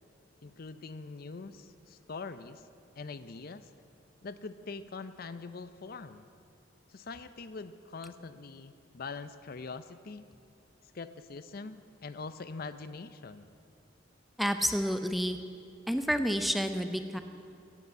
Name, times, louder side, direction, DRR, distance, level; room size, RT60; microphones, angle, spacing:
voice 1, 0.4-2.7 3.0-3.7 4.2-6.3 6.9-10.3 10.9-13.5, left 4 dB, 50° left, 12 dB, 0.5 m, -43 dB
voice 2, 14.4-15.4 15.9-17.2, equal, ahead, 8 dB, 0.5 m, -29 dB
15.5 x 8.1 x 8.4 m, 2.6 s
head